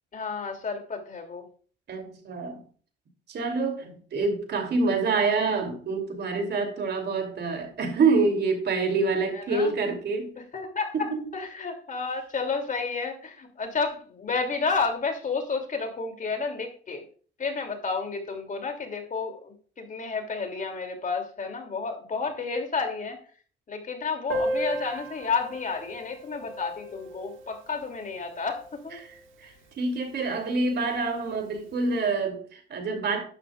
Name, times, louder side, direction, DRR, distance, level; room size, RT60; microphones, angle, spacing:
voice 1, 0.1-1.5 9.3-9.7 10.4-17.0 17.4-23.2 23.7-29.0, left 4 dB, 40° left, 2.8 m, -31 dB
voice 2, 1.9-2.6 3.3-10.3 11.1-11.2 29.0-33.2, right 4 dB, 60° right, 2.9 m, -27 dB
Piano, 24.3-29.7 29.9-30.0 30.2-30.4 30.7-30.8 31.6-31.7, right 1 dB, 90° right, 1.9 m, -36 dB
11.5 x 11.0 x 2.4 m
cardioid pair, 90°, 20 cm